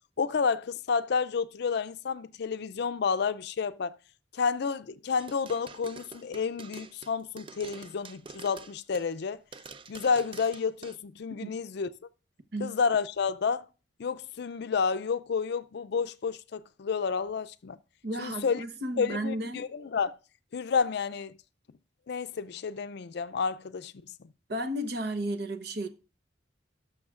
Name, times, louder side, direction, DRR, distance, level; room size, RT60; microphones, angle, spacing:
voice 1, 0.2-4.0 4.3-9.4 9.9-11.9 12.6-13.7 14.0-17.8 18.2-18.6 19.0-20.2 20.5-21.4 22.1-24.3, left 5 dB, 65° left, 0.4 m, -30 dB
sound 1, 5.2-9.2 9.5-11.0, right 4 dB, 30° right, 0.5 m, -47 dB
voice 2, 18.0-19.6 24.5-25.9, right 1 dB, 60° right, 1.0 m, -33 dB
18.5 x 6.4 x 2.4 m
head